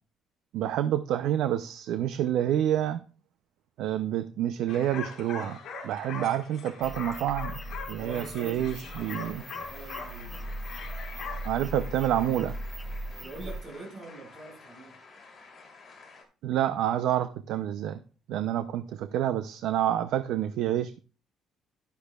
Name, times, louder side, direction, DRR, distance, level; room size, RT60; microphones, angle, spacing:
voice 1, 0.5-3.0 3.8-5.6 5.8-7.6 7.9-9.4 11.4-12.6 16.4-18.0 18.3-21.0, right 11 dB, 80° right, 0.5 m, -28 dB
sound 1, 4.7-11.5, left 5 dB, 45° left, 4.6 m, -41 dB
sound 2, 6.8-13.6, right 1 dB, 5° right, 0.7 m, -39 dB
voice 2, 8.0-10.6 13.1-14.9, right 3 dB, 40° right, 5.8 m, -44 dB
sound 3, 9.0-16.2, left 4 dB, 25° left, 3.0 m, -51 dB
12.0 x 11.5 x 2.3 m
cardioid pair, 170°, 0 cm